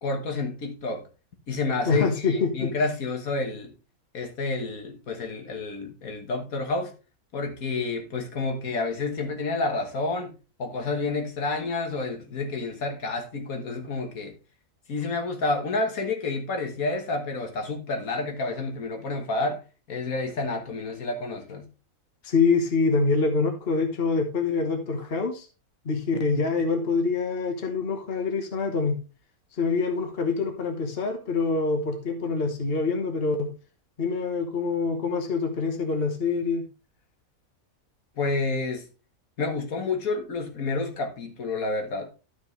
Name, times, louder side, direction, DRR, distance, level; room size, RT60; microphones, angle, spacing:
voice 1, 0.0-1.1 1.5-3.7 4.1-6.9 7.3-10.3 10.6-14.4 14.9-19.6 19.9-21.7 38.2-38.9 39.4-42.1, left 3 dB, 75° left, 1.9 m, -29 dB
voice 2, 1.8-2.7 22.2-25.5 25.8-29.0 29.6-33.5 34.0-36.6, left 4 dB, 45° left, 1.5 m, -25 dB
12.0 x 6.2 x 3.2 m
omnidirectional pair, 1.5 m